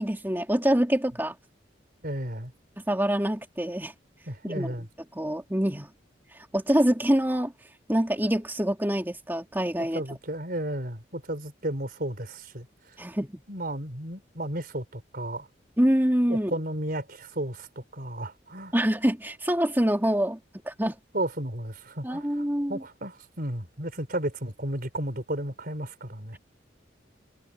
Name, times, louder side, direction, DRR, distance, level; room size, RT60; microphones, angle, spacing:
voice 1, 0.0-1.3 2.9-3.9 4.5-4.7 5.1-5.9 6.3-7.5 7.9-10.0 13.0-13.4 15.8-16.5 18.7-20.4 20.6-21.0 22.0-22.8, equal, 10° right, 2.6 m, -25 dB
voice 2, 2.0-2.5 4.3-4.9 9.9-12.7 13.5-15.5 16.3-18.7 21.1-22.3 22.7-26.4, right 1 dB, 50° right, 4.6 m, -33 dB
head